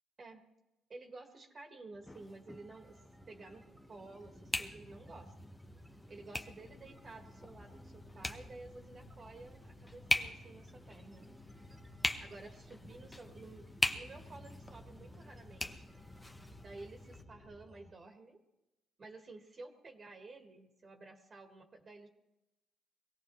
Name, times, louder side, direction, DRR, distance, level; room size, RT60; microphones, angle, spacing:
voice 1, 0.9-3.0 3.3-5.5 6.1-11.3 12.2-13.7 13.9-15.8 16.6-18.4 19.0-22.1, right 3 dB, 40° right, 4 dB, 1.6 m, -52 dB
sound 1, 1.9-17.9, right 1 dB, 20° right, 1.6 m, -58 dB
sound 2, 2.1-17.2, left 1 dB, 15° left, 1.0 m, -42 dB
sound 3, 6.6-17.5, left 5 dB, 65° left, 1.4 m, -62 dB
22.5 x 17.0 x 3.1 m, 0.96 s
cardioid pair, 90°, 0 cm